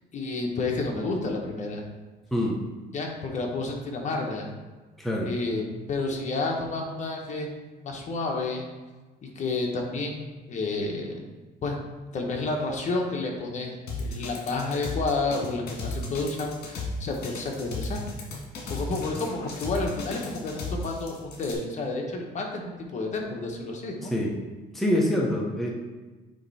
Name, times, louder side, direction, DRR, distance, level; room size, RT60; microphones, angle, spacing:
voice 1, 0.1-1.8 2.9-4.5 5.2-7.5 7.8-8.6 9.3-11.2 11.6-11.7 12.1-18.0 18.7-24.1, left 3 dB, 45° left, 1 dB, 1.2 m, -30 dB
voice 2, 5.0-5.3 24.1-24.3 24.7-25.7, left 1 dB, ahead, -2 dB, 1.0 m, -25 dB
sound 1, 13.9-21.6, left 3 dB, 70° left, 1.9 m, -35 dB
9.1 x 3.1 x 4.3 m, 1.2 s
cardioid pair, 110°, 17 cm